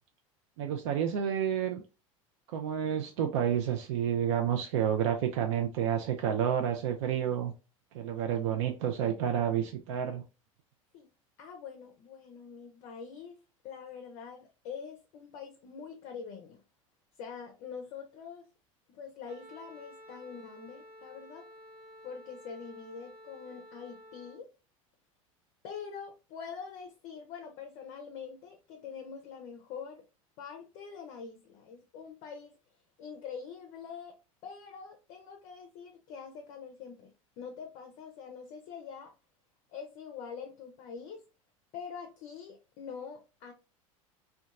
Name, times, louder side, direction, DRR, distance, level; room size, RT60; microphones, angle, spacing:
voice 1, 0.6-1.8 2.5-7.5 7.9-10.2, right 9 dB, 55° right, 0.4 m, -30 dB
voice 2, 11.4-16.6 17.2-18.5 18.9-21.5 22.0-24.5 25.6-30.0 30.4-32.5 33.0-39.1 39.7-41.2 41.7-43.5, left 6 dB, 45° left, 0.5 m, -45 dB
Wind instrument woodwind instrument, 19.2-24.4, equal, 75° right, 0.9 m, -52 dB
2.7 x 2.2 x 2.3 m
figure-of-eight pair, 75°, 18 cm